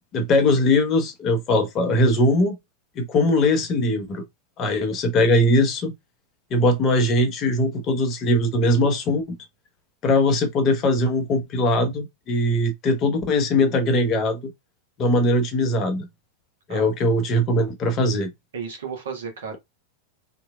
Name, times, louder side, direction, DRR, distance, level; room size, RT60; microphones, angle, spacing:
voice 1, 0.1-2.6 3.0-4.2 4.6-5.9 6.5-9.4 10.0-14.5 15.0-16.1 16.7-18.3, left 1 dB, 35° left, 0.9 m, -20 dB
voice 2, 18.5-19.6, right 6 dB, 65° right, 1.3 m, -33 dB
3.8 x 2.9 x 2.4 m
figure-of-eight pair, 90°, 0 cm